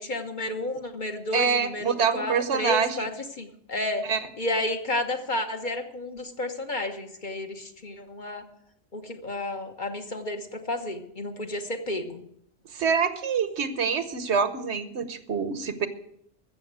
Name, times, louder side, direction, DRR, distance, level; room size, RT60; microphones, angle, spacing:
voice 1, 0.0-3.1 3.4-4.0 4.4-8.4 8.9-12.2, left 1 dB, 45° left, 5 dB, 1.3 m, -31 dB
voice 2, 1.3-3.1 4.0-4.2 12.7-15.9, right 6 dB, 70° right, 12 dB, 1.3 m, -26 dB
14.5 x 7.1 x 8.0 m, 0.71 s
omnidirectional pair, 1.2 m